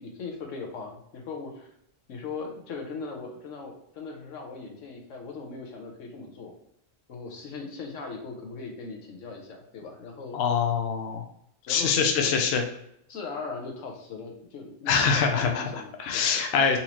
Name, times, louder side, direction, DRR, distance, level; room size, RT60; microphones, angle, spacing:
voice 1, 0.0-1.7 2.1-6.5 7.1-10.4 11.7-12.3 13.1-16.3, left 4 dB, 80° left, 2 dB, 1.1 m, -39 dB
voice 2, 10.3-11.2 11.7-12.6 14.9-15.6 16.0-16.8, left 6 dB, 65° left, 4 dB, 0.7 m, -24 dB
4.1 x 2.7 x 2.9 m, 0.75 s
omnidirectional pair, 1.3 m